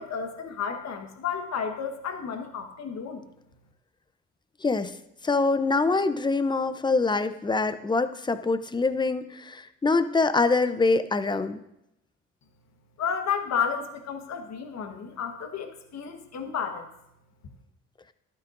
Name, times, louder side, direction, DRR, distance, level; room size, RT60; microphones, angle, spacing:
voice 1, 0.0-3.2 13.0-16.9, left 7 dB, 60° left, 4 dB, 1.4 m, -32 dB
voice 2, 4.6-5.0 5.2-11.6, left 3 dB, 15° left, 11 dB, 0.6 m, -24 dB
13.0 x 11.0 x 2.6 m, 0.83 s
cardioid pair, 90°, 30 cm